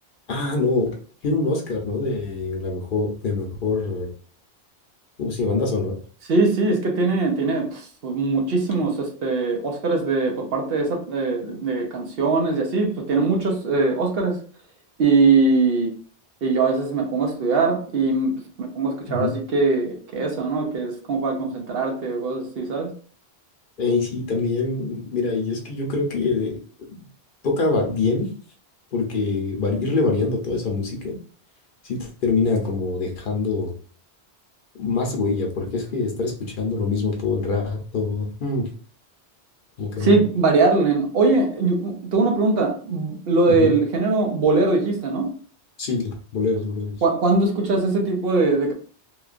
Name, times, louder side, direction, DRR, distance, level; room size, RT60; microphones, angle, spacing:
voice 1, 0.3-0.9 1.2-4.1 5.2-5.9 19.1-19.3 23.8-26.6 26.9-27.0 27.4-28.3 28.9-31.1 31.8-33.7 34.8-38.7 39.8-40.2 43.5-43.7 45.8-47.0, left 3 dB, 55° left, 0.8 m, -24 dB
voice 2, 6.3-14.4 15.0-16.0 16.4-22.9 40.0-45.3 47.0-48.7, right 3 dB, 65° right, 0.8 m, -21 dB
3.1 x 2.2 x 2.4 m
omnidirectional pair, 1.1 m